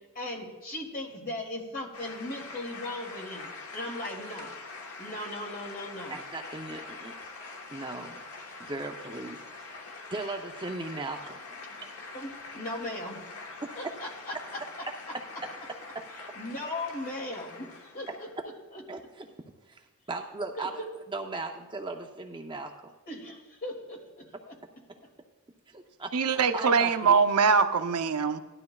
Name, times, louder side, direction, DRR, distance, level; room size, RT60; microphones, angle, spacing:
voice 1, 0.1-4.5 5.0-6.2 12.1-13.2 13.8-14.6 16.3-18.3 18.7-18.8 20.6-20.9 23.1-24.6, left 1 dB, 40° left, 2.5 m, -38 dB
sound 1, 1.9-18.4, left 3 dB, 70° left, 1.2 m, -44 dB
voice 2, 6.1-7.1 7.7-8.2 8.6-9.8 10.1-11.4 13.6-13.9 18.9-19.3 19.7-19.8 20.1-20.7 21.1-22.7 25.7-27.2, right 3 dB, 20° right, 0.7 m, -37 dB
voice 3, 26.1-28.4, right 5 dB, 85° right, 0.7 m, -23 dB
17.5 x 12.0 x 2.3 m
head